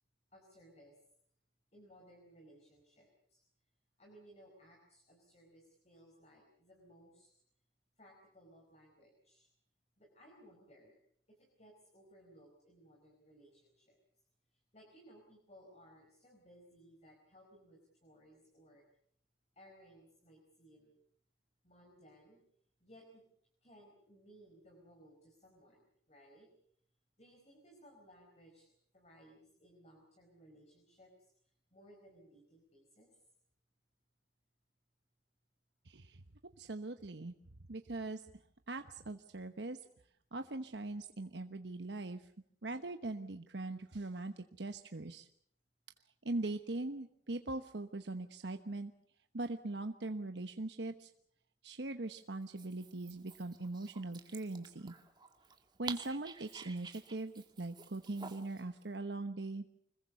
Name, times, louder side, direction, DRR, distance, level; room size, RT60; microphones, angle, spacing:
voice 1, 0.3-1.0 1.7-3.4 4.0-7.3 8.0-9.5 10.0-11.0 11.3-14.0 14.5-18.8 19.5-21.0 21.6-22.4 22.8-23.2 23.6-26.5 27.2-33.2, equal, 35° left, 1 dB, 4.8 m, -61 dB
voice 2, 35.8-36.2 36.6-37.3 37.7-38.2 38.7-39.8 40.3-42.3 42.6-45.3 46.2-48.9 49.3-51.1 51.6-54.9 55.8-59.6, right 2 dB, 80° right, 7 dB, 1.1 m, -41 dB
Dog, 52.4-58.6, right 5 dB, 25° right, 2.1 m, -51 dB
25.5 x 21.5 x 6.9 m, 0.65 s
head